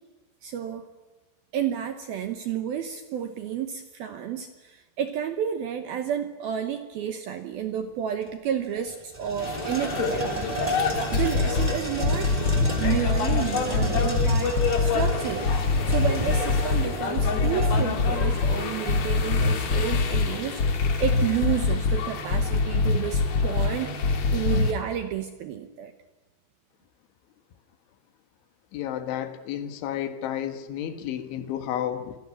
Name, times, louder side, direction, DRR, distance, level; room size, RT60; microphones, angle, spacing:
voice 1, 0.4-0.9 1.5-10.5 10.9-15.5 15.9-25.9, right 9 dB, 75° right, 8 dB, 2.3 m, -31 dB
sound 1, 8.2-8.3 8.6-19.3, right 2 dB, 10° right, 2.8 m, -33 dB
sound 2, 9.4-24.7, left 5 dB, 55° left, 4.0 m, -32 dB
sound 3, 11.0-11.7 12.0-13.4 13.7-15.1 15.4-16.8 17.2-18.6 18.9-20.3 20.6-22.0 22.3-23.7 24.0-24.7, left 4 dB, 90° left, 1.2 m, -23 dB
voice 2, 28.7-32.2, left 10 dB, 75° left, 9 dB, 3.8 m, -31 dB
26.5 x 17.0 x 9.8 m, 1.2 s
omnidirectional pair, 5.7 m